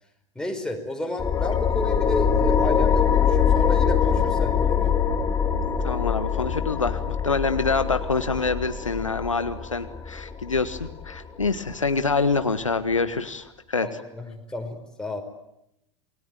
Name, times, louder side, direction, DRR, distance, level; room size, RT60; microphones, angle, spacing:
voice 1, 0.4-4.9 13.8-15.2, left 2 dB, 5° left, 3 dB, 5.2 m, -32 dB
sound 1, 1.2-12.2, left 7 dB, 20° left, 2.8 m, -23 dB
voice 2, 5.7-13.9, left 4 dB, 85° left, 10 dB, 1.5 m, -26 dB
28.0 x 21.0 x 9.2 m, 0.84 s
figure-of-eight pair, 85°, 16 cm